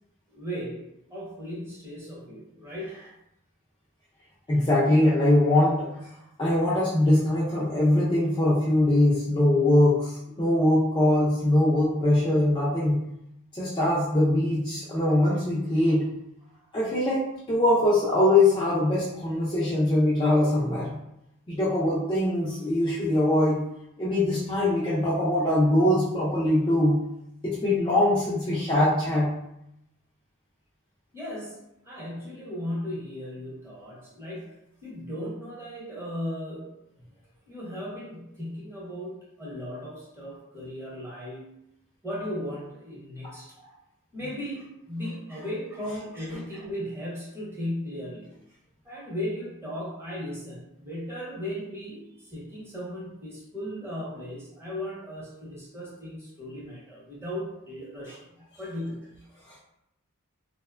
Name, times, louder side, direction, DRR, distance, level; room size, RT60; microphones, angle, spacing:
voice 1, 0.3-3.1 4.5-4.6 16.4-16.7 31.1-31.6 31.8-36.8 37.5-41.4 42.0-43.7 44.1-48.3 48.8-59.1, equal, 10° right, -7 dB, 0.9 m, -36 dB
voice 2, 4.5-5.9 6.4-13.0 13.5-16.1 16.7-21.0 21.5-23.6 24.0-27.0 27.4-29.3 43.2-43.3, left 1 dB, 20° left, -7 dB, 0.4 m, -22 dB
2.9 x 2.1 x 2.4 m, 0.82 s
head